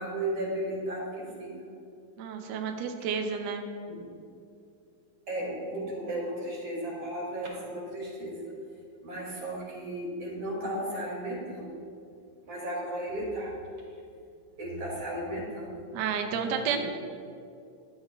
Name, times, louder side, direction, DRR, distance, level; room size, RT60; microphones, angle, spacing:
voice 1, 0.0-1.5 3.9-4.0 5.3-8.4 9.0-11.7 12.4-13.5 14.6-15.9 16.7-16.8, right 1 dB, 90° right, -4 dB, 3.1 m, -34 dB
voice 2, 2.2-3.7 15.9-16.8, right 6 dB, 70° right, 5 dB, 1.1 m, -31 dB
12.0 x 8.0 x 2.2 m, 2.5 s
omnidirectional pair, 2.3 m